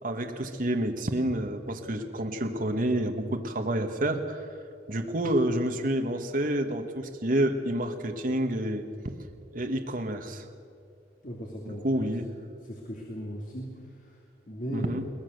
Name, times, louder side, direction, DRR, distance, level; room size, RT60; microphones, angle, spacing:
voice 1, 0.0-4.5 4.9-8.8 9.5-10.4 11.8-12.2 14.7-15.0, right 1 dB, 50° right, 5 dB, 1.4 m, -28 dB
voice 2, 11.2-12.3 12.6-15.0, equal, 50° left, -1 dB, 2.5 m, -38 dB
22.0 x 19.5 x 6.6 m, 2.5 s
head